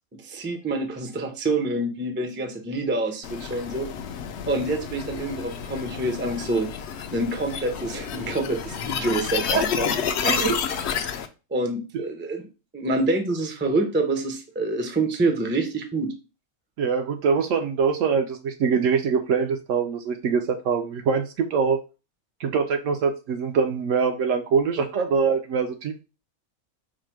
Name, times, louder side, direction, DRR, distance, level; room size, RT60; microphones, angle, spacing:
voice 1, 0.1-3.9 4.5-6.7 7.1-9.9 11.5-12.5 12.7-16.1, right 2 dB, 20° right, 4 dB, 0.3 m, -26 dB
sound 1, 3.2-11.3, left 7 dB, 65° left, 0.7 m, -30 dB
voice 2, 10.2-10.6 11.9-12.0 16.8-21.8 22.4-26.0, right 6 dB, 70° right, 6 dB, 0.8 m, -23 dB
4.9 x 2.1 x 4.5 m, 0.30 s
omnidirectional pair, 1.6 m